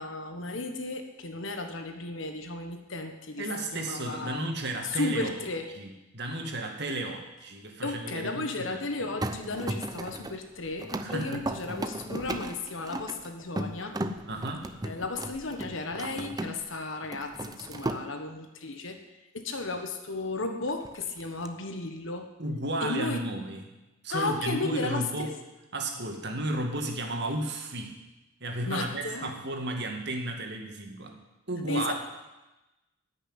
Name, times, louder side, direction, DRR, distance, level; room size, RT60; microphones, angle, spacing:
voice 1, 0.0-4.5 4.8-5.7 7.8-14.0 14.8-19.0 19.3-22.3 22.8-23.2 24.1-25.3 28.6-29.4 31.7-31.9, left 2 dB, 70° left, 5 dB, 1.4 m, -34 dB
voice 2, 3.4-5.4 5.8-9.1 11.0-11.5 14.2-14.7 22.4-23.6 24.0-25.3 25.7-28.0 28.4-31.2 31.5-31.9, right 1 dB, 55° right, 3 dB, 2.2 m, -33 dB
sound 1, 9.2-16.7 17.0-18.0 20.7-21.5, right 1 dB, 20° right, 0.7 m, -36 dB
14.5 x 6.7 x 9.8 m, 1.0 s
head